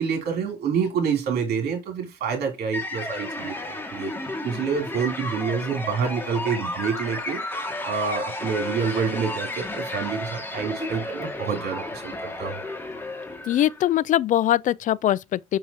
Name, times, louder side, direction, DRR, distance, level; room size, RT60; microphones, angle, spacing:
voice 1, 0.0-4.1 4.4-7.4 7.8-12.6, right 6 dB, 70° right, 3.0 m, -27 dB
sound 1, 2.7-13.9, left 2 dB, 15° left, 1.9 m, -33 dB
sound 2, 7.1-7.7 8.7-13.6 13.9-14.0, equal, 25° right, 4.4 m, -45 dB
voice 2, 13.5-15.6, left 12 dB, 50° left, 0.4 m, -22 dB
6.4 x 5.7 x 2.8 m
cardioid pair, 110°, 17 cm